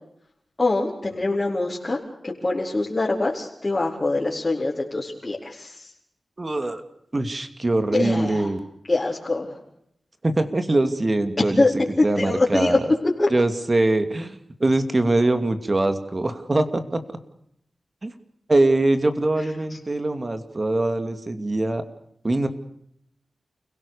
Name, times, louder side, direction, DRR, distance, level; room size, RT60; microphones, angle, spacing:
voice 1, 0.6-5.9 8.0-8.5 8.9-9.6 11.6-11.7 12.0-12.8 13.2-13.3, left 2 dB, 35° left, -4 dB, 4.5 m, -24 dB
voice 2, 6.4-6.8 7.1-8.6 10.2-12.9 13.3-17.0 18.0-18.1 18.5-21.8 22.2-22.5, right 2 dB, 40° right, 8 dB, 2.6 m, -23 dB
29.5 x 17.0 x 6.8 m, 0.74 s
cardioid pair, 55°, 0 cm